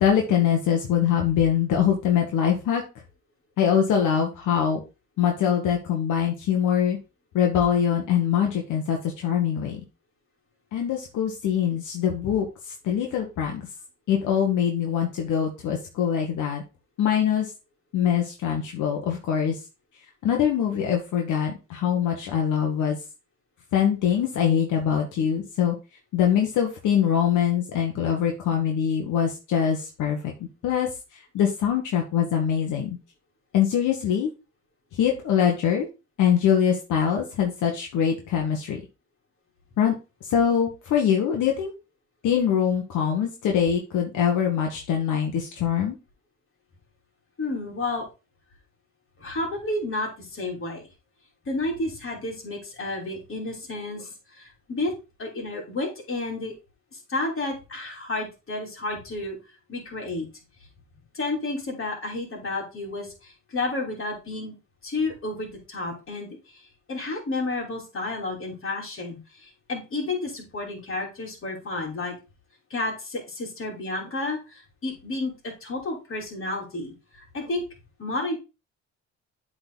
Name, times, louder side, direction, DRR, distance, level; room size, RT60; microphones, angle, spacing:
voice 1, 0.0-2.8 3.6-4.8 5.2-7.0 7.3-9.8 10.7-12.5 12.8-13.7 14.1-16.6 17.0-17.5 17.9-19.6 20.2-23.0 23.7-25.8 26.1-30.3 30.6-33.0 33.5-34.3 34.9-35.9 36.2-38.8 39.8-39.9 40.3-41.7 42.2-46.0, left 8 dB, 80° left, 1 dB, 1.3 m, -23 dB
voice 2, 47.4-48.1 49.2-50.9 51.4-54.9 55.2-56.5 56.9-59.4 59.7-60.3 61.1-64.5 64.8-72.1 72.7-77.7 78.0-78.4, left 2 dB, 45° left, 0 dB, 3.1 m, -31 dB
8.1 x 3.9 x 3.9 m, 0.28 s
cardioid pair, 90°, 30 cm